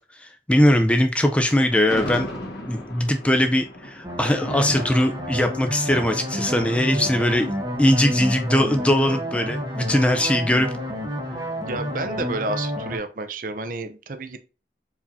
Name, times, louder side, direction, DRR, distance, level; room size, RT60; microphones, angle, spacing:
voice 1, 0.2-2.3 2.7-7.5 7.8-10.7, left 1 dB, 5° left, 5 dB, 0.4 m, -20 dB
Thunder, 1.4-8.6, left 1 dB, 65° left, 1.5 m, -37 dB
sound 1, 4.0-13.0, equal, 25° right, 1.1 m, -30 dB
voice 2, 11.7-14.4, right 2 dB, 50° right, 9 dB, 0.5 m, -30 dB
4.8 x 3.5 x 2.7 m, 0.33 s
head